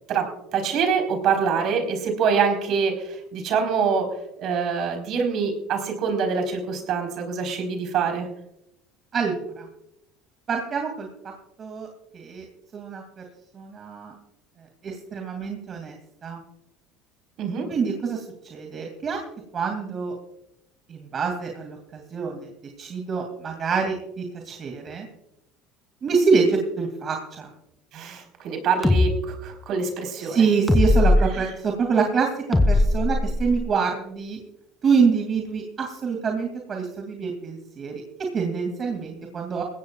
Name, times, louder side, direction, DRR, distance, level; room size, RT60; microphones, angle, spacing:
voice 1, 0.1-4.1 4.4-8.3 17.4-17.7 27.9-30.5 31.3-31.4, right 6 dB, 55° right, 4 dB, 4.2 m, -25 dB
voice 2, 9.1-9.7 10.5-11.3 11.6-11.9 12.1-12.5 12.7-13.2 13.5-14.1 14.8-16.4 17.7-19.2 19.5-20.1 20.9-22.5 22.8-25.1 26.0-27.5 30.2-34.4 34.8-38.0 38.3-39.6, right 5 dB, 40° right, 2 dB, 2.5 m, -26 dB
sound 1, 28.8-29.1 30.7-31.2 32.5-33.7, left 2 dB, 10° left, 2.8 m, -19 dB
20.5 x 16.5 x 2.4 m, 0.82 s
supercardioid pair, 90°, 0 cm